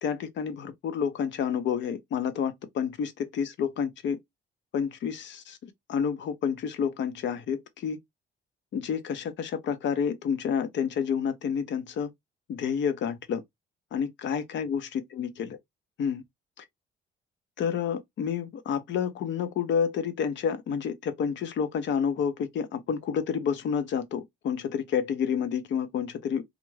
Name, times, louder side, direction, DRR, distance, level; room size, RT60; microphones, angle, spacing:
voice 1, 0.0-4.2 4.7-8.0 8.7-12.1 12.5-13.4 13.9-15.6 16.0-16.2 16.6-16.7 17.6-26.4, left 7 dB, 70° left, 0.6 m, -29 dB
2.4 x 2.2 x 3.1 m
cardioid pair, 90°, 20 cm